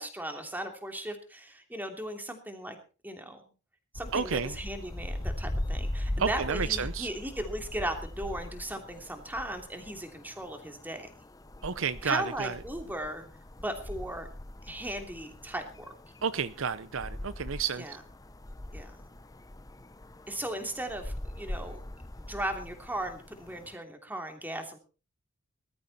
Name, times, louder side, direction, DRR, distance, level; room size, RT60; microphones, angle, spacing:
voice 1, 0.0-2.8 3.0-3.4 3.9-11.1 12.0-13.3 13.6-14.3 14.6-15.9 17.8-17.9 18.7-18.9 20.3-21.8 22.2-24.8, right 1 dB, 10° right, 2.9 m, -37 dB
sound 1, 3.9-23.8, left 1 dB, 15° left, 0.7 m, -40 dB
voice 2, 4.1-4.6 6.2-7.1 11.6-12.6 16.2-18.0, right 6 dB, 60° right, 0.7 m, -31 dB
20.0 x 13.0 x 4.2 m
head